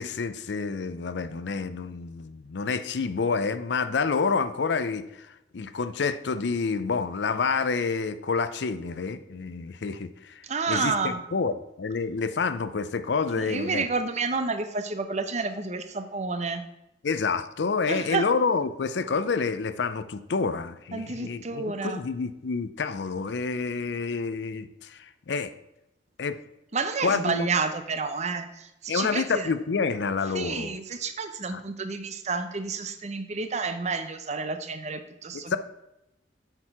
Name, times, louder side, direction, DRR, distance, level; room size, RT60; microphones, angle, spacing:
voice 1, 0.0-13.8 17.0-25.5 26.2-26.4 27.0-27.5 28.9-30.8 31.5-31.6 35.5-35.6, left 4 dB, 70° left, 12 dB, 0.5 m, -28 dB
voice 2, 10.4-11.2 13.4-16.6 17.9-18.3 20.9-22.0 26.7-29.5 30.3-35.6, right 4 dB, 40° right, 9 dB, 0.7 m, -30 dB
7.8 x 4.5 x 5.9 m, 0.89 s
head